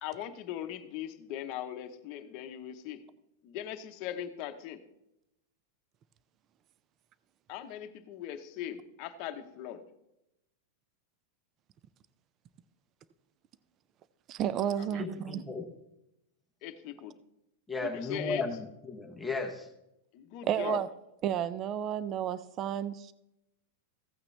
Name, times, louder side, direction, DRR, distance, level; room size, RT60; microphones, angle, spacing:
voice 1, 0.0-3.0 3.4-4.8 7.5-9.8 14.8-15.1 16.6-17.1 17.8-18.4 20.1-20.8, left 11 dB, 35° left, 6 dB, 0.9 m, -40 dB
voice 2, 14.3-15.4 20.4-20.9 21.2-23.1, right 10 dB, 25° right, 16 dB, 0.4 m, -32 dB
voice 3, 15.0-15.7 17.7-19.7, left 3 dB, 5° left, 1 dB, 0.8 m, -35 dB
15.0 x 8.8 x 3.3 m, 0.85 s
supercardioid pair, 175°, 0 cm